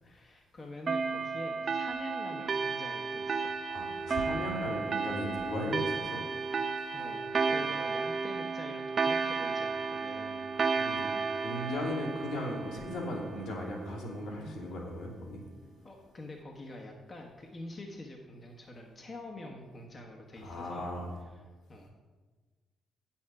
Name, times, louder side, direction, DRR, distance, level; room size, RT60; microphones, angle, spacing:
voice 1, 0.0-3.5 6.9-10.5 15.8-20.9 21.3-21.4 21.7-21.9, left 2 dB, 40° left, 1 dB, 1.2 m, -46 dB
sound 1, 0.9-14.0, right 4 dB, 50° right, 0.6 m, -33 dB
voice 2, 3.7-6.2 6.8-6.9 7.4-7.6 10.7-11.1 11.3-15.4 20.4-21.1, left 1 dB, 70° left, -3 dB, 2.4 m, -37 dB
8.4 x 7.1 x 4.9 m, 1.4 s
hypercardioid pair, 45°, 0 cm